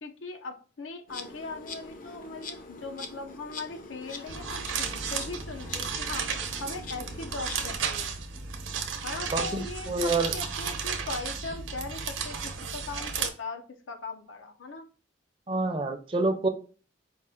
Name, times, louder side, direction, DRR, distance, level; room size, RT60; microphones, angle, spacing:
voice 1, 0.0-8.2 9.0-14.9, left 3 dB, 85° left, 5 dB, 0.7 m, -40 dB
Insect, 1.1-7.8, left 3 dB, 45° left, 0.6 m, -44 dB
sound 1, 4.3-13.3, right 6 dB, 85° right, 0.7 m, -33 dB
voice 2, 9.3-10.3 15.5-16.5, right 2 dB, 25° right, 7 dB, 0.5 m, -27 dB
4.7 x 2.4 x 3.7 m, 0.38 s
head